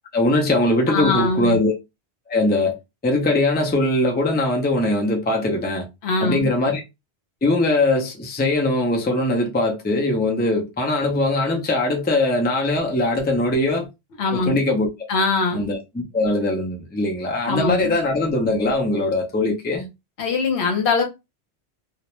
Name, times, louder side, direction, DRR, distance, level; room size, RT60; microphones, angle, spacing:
voice 1, 0.1-1.7 2.3-2.8 3.0-5.9 6.2-6.8 7.4-13.9 14.3-14.9 15.5-19.9, left 2 dB, 15° left, 0.4 m, -21 dB
voice 2, 0.9-1.6 6.0-6.5 14.2-14.6 15.1-15.7 17.4-18.0 20.2-21.0, left 3 dB, 75° left, 1.0 m, -22 dB
2.4 x 2.1 x 2.9 m
omnidirectional pair, 1.1 m